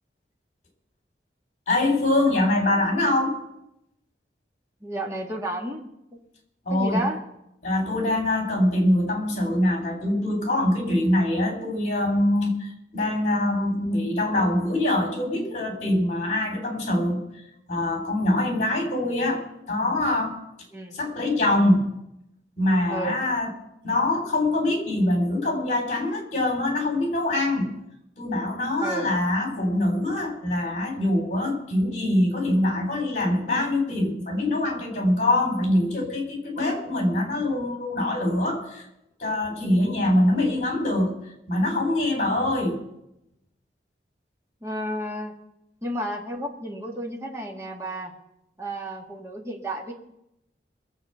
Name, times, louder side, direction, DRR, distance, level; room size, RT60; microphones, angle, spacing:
voice 1, 1.7-3.4 6.7-7.0 7.6-17.2 17.7-20.4 20.9-22.0 22.6-23.5 23.8-27.7 28.2-38.8 39.2-41.2 41.5-42.8, left 1 dB, 40° left, 3 dB, 3.6 m, -24 dB
voice 2, 4.8-5.9 6.7-7.2 20.7-21.0 22.9-23.2 28.8-29.1 44.6-45.3 45.8-48.1 48.6-49.9, right 1 dB, 15° right, 0 dB, 2.0 m, -31 dB
23.0 x 7.7 x 5.7 m, 0.85 s
head